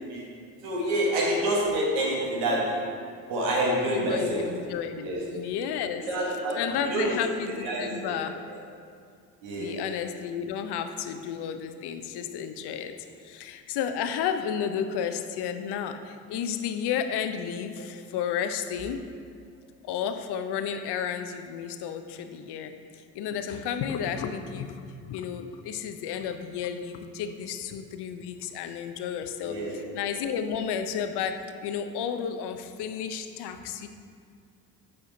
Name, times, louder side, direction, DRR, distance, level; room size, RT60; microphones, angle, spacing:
voice 1, 0.6-2.8 3.3-4.4 5.0-5.2 6.0-7.2 7.6-8.1 8.5-8.6 9.4-9.8 29.4-29.8 30.2-30.3, right 1 dB, 90° right, -4 dB, 1.5 m, -27 dB
voice 2, 3.9-6.1 6.5-8.4 9.6-13.0 13.2-19.1 19.8-22.8 23.1-33.9, left 8 dB, 60° left, 9 dB, 0.6 m, -32 dB
7.5 x 4.3 x 3.9 m, 2.3 s
hypercardioid pair, 60°, 45 cm